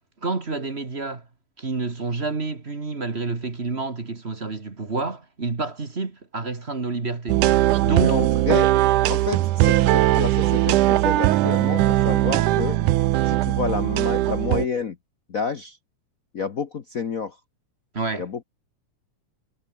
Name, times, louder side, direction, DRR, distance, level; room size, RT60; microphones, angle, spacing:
voice 1, 0.2-1.2 1.6-7.4 7.8-8.2 17.9-18.3, right 3 dB, 25° right, 1.8 m, -28 dB
sound 1, 7.3-14.7, right 15 dB, 85° right, 2.4 m, -20 dB
voice 2, 8.0-8.7 9.1-12.8 13.2-15.0 15.3-15.8 16.3-17.4 18.2-18.4, left 6 dB, 75° left, 0.7 m, -29 dB
omnidirectional pair, 3.5 m